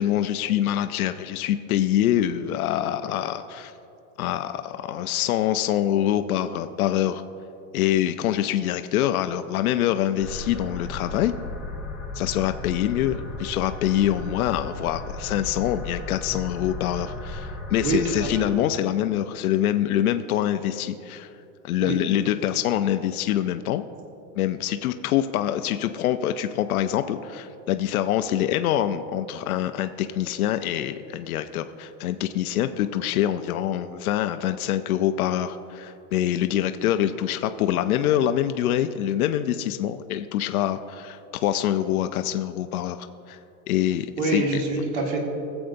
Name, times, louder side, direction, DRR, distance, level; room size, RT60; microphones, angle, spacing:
voice 1, 0.0-3.7 4.2-7.2 7.7-11.3 12.1-21.3 21.6-23.8 24.4-43.4 43.7-44.4, left 11 dB, 85° left, 9 dB, 0.6 m, -25 dB
sound 1, 10.2-18.5, left 2 dB, ahead, 0.9 m, -35 dB
voice 2, 17.8-18.3 21.8-21.9 44.2-45.2, right 2 dB, 40° right, 1 dB, 1.7 m, -25 dB
20.5 x 7.9 x 2.6 m, 2.7 s
supercardioid pair, 170°, 42 cm